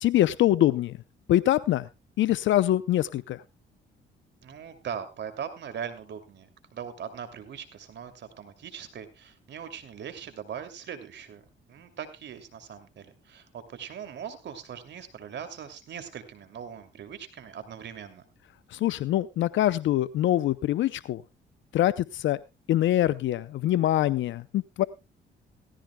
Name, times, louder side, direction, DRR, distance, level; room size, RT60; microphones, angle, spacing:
voice 1, 0.0-1.0 1.3-1.9 2.2-3.4 18.7-21.2 21.7-22.4 22.7-24.8, left 13 dB, 70° left, 16 dB, 0.6 m, -24 dB
voice 2, 4.4-18.2, right 8 dB, 60° right, 9 dB, 2.6 m, -40 dB
17.0 x 15.0 x 2.2 m, 0.24 s
cardioid pair, 90°, 20 cm